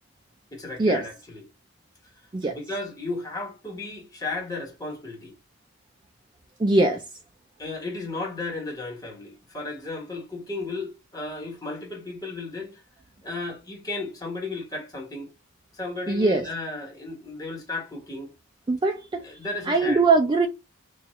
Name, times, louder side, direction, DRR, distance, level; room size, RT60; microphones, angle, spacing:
voice 1, 0.5-1.4 2.4-5.3 7.6-12.8 13.2-15.3 15.7-18.3 19.2-20.0, left 3 dB, 15° left, 1.0 m, -34 dB
voice 2, 6.6-7.0 16.1-16.5 18.7-19.2 19.7-20.5, right 3 dB, 20° right, 0.3 m, -21 dB
4.2 x 2.3 x 3.0 m
head